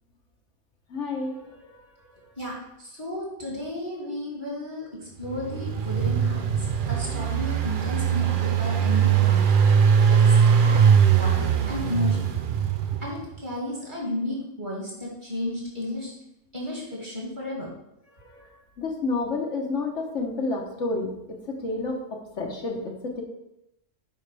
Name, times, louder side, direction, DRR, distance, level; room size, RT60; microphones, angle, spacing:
voice 1, 0.9-1.4 1.7-1.8 18.2-18.5 18.8-23.2, left 3 dB, 70° left, 1 dB, 1.4 m, -30 dB
voice 2, 3.0-4.9 5.2-6.5 6.9-9.6 10.1-10.7 11.1-12.2 13.0-16.1 16.5-17.7, left 1 dB, 40° right, -4 dB, 2.4 m, -33 dB
Engine, 5.2-13.3, right 7 dB, 55° right, 0.6 m, -21 dB
9.1 x 5.0 x 3.4 m, 0.84 s
omnidirectional pair, 1.3 m